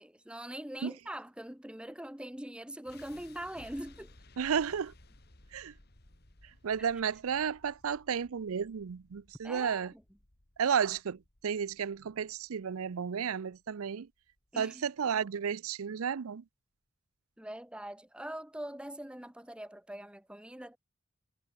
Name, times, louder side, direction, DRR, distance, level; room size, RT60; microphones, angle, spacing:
voice 1, 0.0-4.1 9.4-10.0 14.5-14.8 17.4-20.8, right 1 dB, 5° right, 0.7 m, -43 dB
sound 1, 2.9-14.9, left 2 dB, 45° left, 2.2 m, -59 dB
voice 2, 4.4-4.9 5.5-5.7 6.6-9.9 10.6-14.1 14.6-16.4, right 7 dB, 85° right, 0.5 m, -32 dB
head